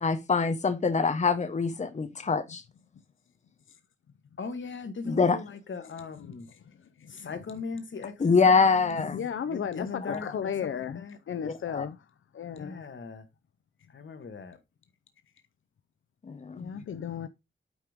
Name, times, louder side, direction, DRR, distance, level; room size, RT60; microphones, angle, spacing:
voice 1, 0.0-2.6 5.0-5.4 8.2-9.2 10.1-10.2 11.4-11.9 16.2-16.7, left 5 dB, 35° left, 0.9 m, -25 dB
voice 2, 4.4-6.5 7.1-8.2 8.4-8.5 8.8-8.9 9.5-11.2 12.5-13.2 13.9-14.6, left 4 dB, 70° left, 1.5 m, -39 dB
voice 3, 9.0-12.0 12.3-12.8 16.5-17.3, left 7 dB, 90° left, 0.6 m, -34 dB
8.9 x 5.1 x 3.5 m
wide cardioid pair, 160°, 20 cm